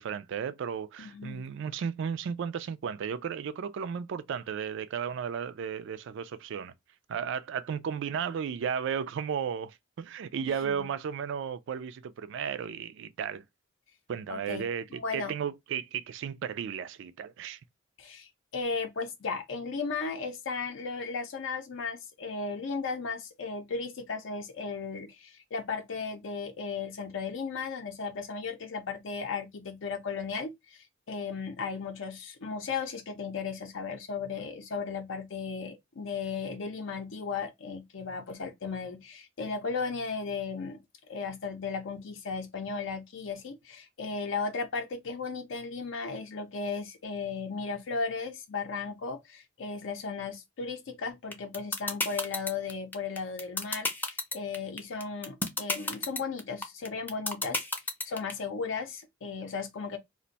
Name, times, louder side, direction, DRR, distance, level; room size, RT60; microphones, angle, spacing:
voice 1, 0.0-6.7 7.1-13.4 14.1-17.6, right 7 dB, 65° right, 0.3 m, -34 dB
voice 2, 1.0-1.4 10.5-10.9 14.3-14.6 14.9-15.3 18.0-40.8 41.1-57.7 58.1-60.0, left 4 dB, 65° left, 0.5 m, -35 dB
sound 1, 51.3-58.3, left 2 dB, 10° left, 0.5 m, -30 dB
2.5 x 2.1 x 3.9 m
head